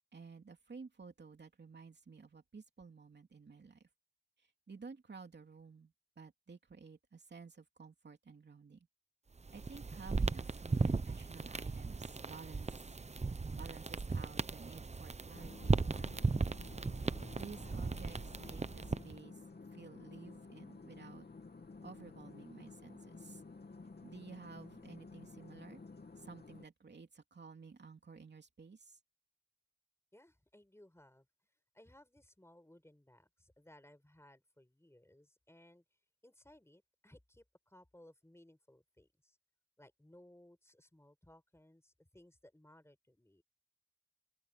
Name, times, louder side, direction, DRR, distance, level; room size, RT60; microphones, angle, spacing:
voice 1, 0.1-3.9 4.7-8.9 9.5-12.9 13.5-16.2 17.3-19.3 19.7-21.2 21.8-23.4 24.0-25.8 26.2-29.0, right 5 dB, 85° right, 2.9 m, -53 dB
sound 1, 9.4-19.2, right 4 dB, 40° right, 0.8 m, -37 dB
sound 2, 15.3-26.7, left 3 dB, 70° left, 2.7 m, -53 dB
voice 2, 30.1-31.3 31.7-35.8 36.2-39.4 39.8-43.4, left 1 dB, 15° left, 5.2 m, -62 dB
open air
wide cardioid pair, 60°, 17 cm